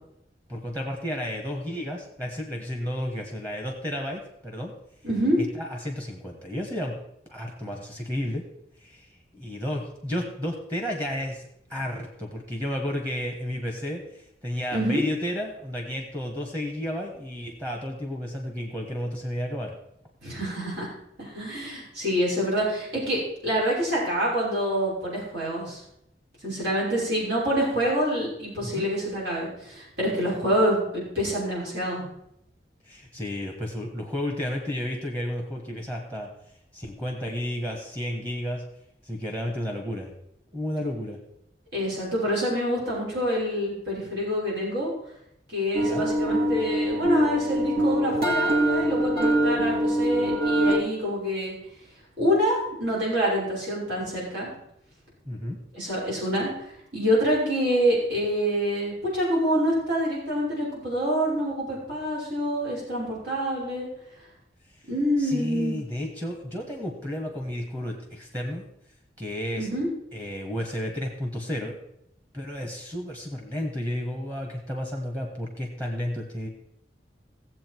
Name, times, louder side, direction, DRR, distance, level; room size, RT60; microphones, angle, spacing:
voice 1, 0.5-4.7 5.4-7.0 7.3-8.5 8.8-9.0 9.3-19.7 28.6-28.9 32.9-36.3 36.7-38.7 39.0-40.1 40.5-41.2 45.8-46.1 55.2-55.6 65.2-68.6 69.2-69.7 70.1-71.8 72.3-76.5, left 1 dB, 20° right, 1 dB, 1.5 m, -32 dB
voice 2, 5.0-5.4 14.7-15.0 20.2-20.9 21.2-25.8 26.4-32.1 41.7-44.9 45.5-51.6 52.2-54.5 55.7-63.9 64.9-65.8 69.6-69.9, equal, 80° right, -6 dB, 6.0 m, -26 dB
sound 1, 45.7-50.8, right 1 dB, 55° right, 2.4 m, -24 dB
17.0 x 7.7 x 4.7 m, 0.78 s
head